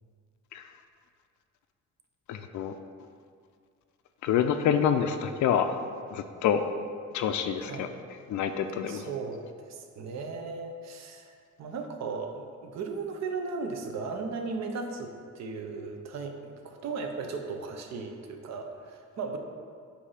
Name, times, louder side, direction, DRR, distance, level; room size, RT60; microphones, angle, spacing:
voice 1, 2.3-2.7 4.2-5.7 6.1-6.6 7.1-7.9 8.3-9.1, left 8 dB, 70° left, 7 dB, 0.5 m, -27 dB
voice 2, 8.8-19.4, right 4 dB, 60° right, 4 dB, 0.8 m, -36 dB
8.3 x 2.8 x 5.6 m, 2.2 s
cardioid pair, 90°, 30 cm